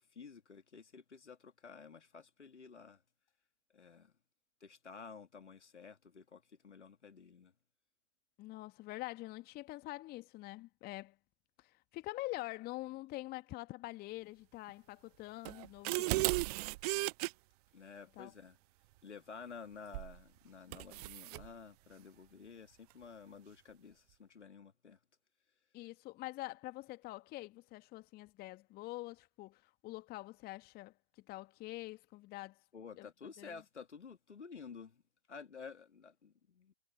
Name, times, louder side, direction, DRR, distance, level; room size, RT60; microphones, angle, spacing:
voice 1, 0.0-3.0 3.7-4.1 4.6-7.5 17.7-18.6 19.0-25.0 32.7-35.0 35.3-36.7, left 5 dB, 75° left, 2.8 m, -52 dB
voice 2, 8.4-11.2 11.6-16.3 18.2-18.3 25.7-30.9 31.3-32.6 33.0-33.1 33.4-33.5, left 19 dB, 25° left, 1.6 m, -45 dB
sound 1, 15.5-17.3 19.9-20.2 20.7-21.5, right 21 dB, 35° right, 0.7 m, -35 dB
figure-of-eight pair, 105°, 36 cm